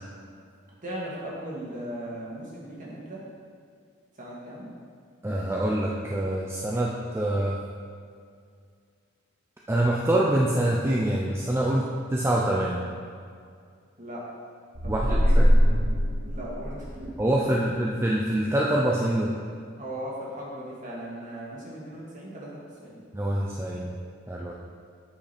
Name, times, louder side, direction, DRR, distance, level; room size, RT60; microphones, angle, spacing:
voice 1, 0.8-3.2 4.2-4.7 14.0-14.2 14.8-15.4 16.3-17.1 17.5-17.6 19.8-23.0, right 1 dB, 40° right, -5 dB, 2.0 m, -38 dB
voice 2, 5.2-7.6 9.7-12.8 14.9-15.5 17.2-19.3 23.1-24.0 24.3-24.5, right 1 dB, 10° right, -4 dB, 0.5 m, -25 dB
sound 1, 14.7-17.2, equal, 85° right, 1.5 m, -22 dB
8.5 x 5.5 x 4.2 m, 2.2 s
head